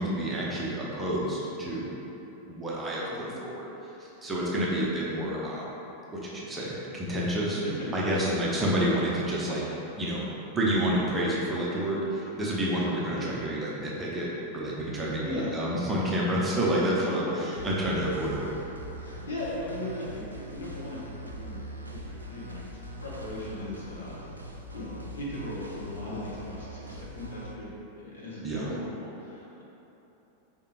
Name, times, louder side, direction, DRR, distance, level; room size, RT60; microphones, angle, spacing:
voice 1, 0.0-2.0 2.5-3.0 3.4-3.7 4.0-5.7 6.1-7.6 7.9-9.6 10.0-10.2 10.5-17.3 17.6-18.4 28.4-28.7, right 1 dB, 15° right, -6 dB, 0.8 m, -29 dB
voice 2, 3.0-3.4 5.1-5.2 7.6-8.5 13.2-13.4 15.0-15.5 17.0-17.4 19.0-21.6 21.9-22.6 23.0-24.2 24.7-29.6, left 1 dB, 70° left, -7 dB, 1.0 m, -38 dB
sound 1, 17.5-27.5, right 1 dB, 80° right, 0.4 m, -42 dB
4.9 x 3.4 x 2.9 m, 3.0 s
figure-of-eight pair, 90°, 0 cm